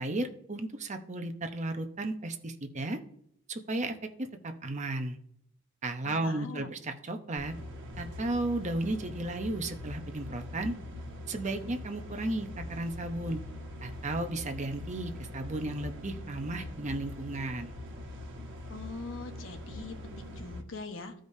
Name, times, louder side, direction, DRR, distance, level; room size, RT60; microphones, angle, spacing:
voice 1, 0.0-3.0 3.5-5.2 5.8-7.5 8.0-10.7 11.3-13.4 13.8-17.7, right 2 dB, 35° right, 6 dB, 0.8 m, -34 dB
voice 2, 6.0-6.7 18.7-21.1, left 3 dB, 75° left, 5 dB, 1.1 m, -42 dB
sound 1, 7.4-20.6, left 1 dB, 65° right, 1.4 m, -43 dB
15.0 x 5.1 x 2.7 m, 0.68 s
head